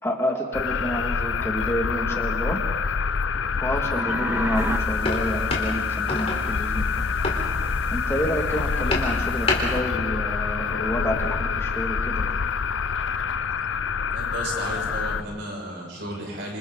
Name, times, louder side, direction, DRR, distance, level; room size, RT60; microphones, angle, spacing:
voice 1, 0.0-2.6 3.6-6.9 7.9-12.4, equal, 15° left, 1 dB, 2.1 m, -29 dB
sound 1, 0.5-15.2, left 6 dB, 80° left, 0.6 m, -27 dB
sound 2, 3.4-4.8, equal, 10° right, 1.4 m, -29 dB
sound 3, 4.5-9.8, left 2 dB, 35° left, 3.9 m, -29 dB
voice 2, 14.1-16.6, right 1 dB, 65° right, 0 dB, 5.9 m, -33 dB
27.0 x 27.0 x 3.9 m, 1.4 s
head